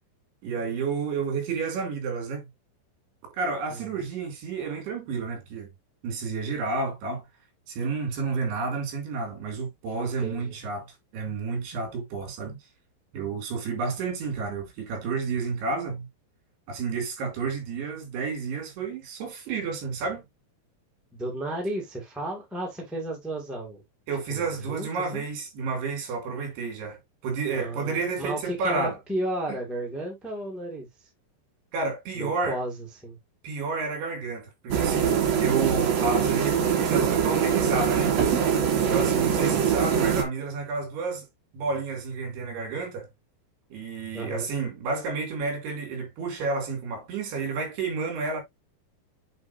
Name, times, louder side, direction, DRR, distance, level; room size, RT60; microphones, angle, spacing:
voice 1, 0.4-2.5 3.3-5.7 6.0-7.3 7.7-12.6 13.1-16.1 16.7-20.2 24.1-29.0 29.5-29.6 31.7-32.6 33.4-38.2 38.8-41.3 41.5-43.1 43.7-48.4, right 4 dB, 75° right, 4.6 m, -30 dB
voice 2, 10.0-10.5 21.1-23.8 24.3-25.2 27.5-30.9 32.1-33.2 39.5-39.7 44.1-44.5, right 1 dB, ahead, 1.0 m, -33 dB
sound 1, 34.7-40.2, right 7 dB, 60° right, 1.9 m, -23 dB
8.3 x 4.5 x 2.8 m
omnidirectional pair, 4.9 m